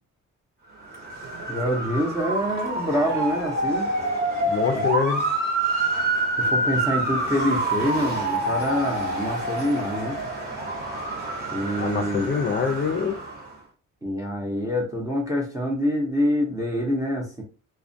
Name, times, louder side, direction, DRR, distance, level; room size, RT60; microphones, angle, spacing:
Motor vehicle (road) / Siren, 0.8-13.5, right 2 dB, 30° right, 0.9 m, -27 dB
voice 1, 1.5-3.9 4.7-4.9 6.4-10.2 11.5-12.3 14.0-17.4, equal, 10° right, 0.6 m, -26 dB
voice 2, 4.4-5.2 11.8-13.2, left 6 dB, 35° left, 0.4 m, -25 dB
2.2 x 2.2 x 2.6 m
cardioid pair, 140°, 31 cm